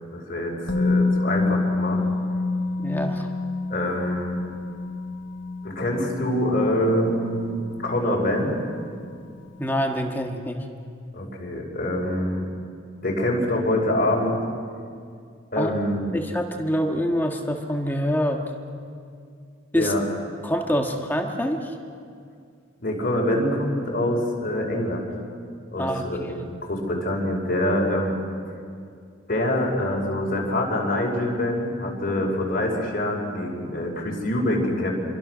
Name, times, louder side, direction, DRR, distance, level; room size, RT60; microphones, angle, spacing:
voice 1, 0.1-2.0 3.7-4.4 5.6-8.6 11.1-12.4 13.0-14.4 15.5-16.2 19.7-20.0 22.8-25.1 25.7-28.2 29.3-34.9, left 1 dB, 45° left, -1 dB, 5.2 m, -25 dB
Musical instrument, 0.7-8.6 8.9-9.0, left 3 dB, 65° left, 1.4 m, -27 dB
voice 2, 2.8-3.3 9.6-10.6 15.6-15.7 16.1-18.4 19.7-19.9 20.4-21.7 25.8-26.4, equal, 10° left, 2 dB, 1.5 m, -26 dB
27.0 x 23.5 x 6.3 m, 2.3 s
head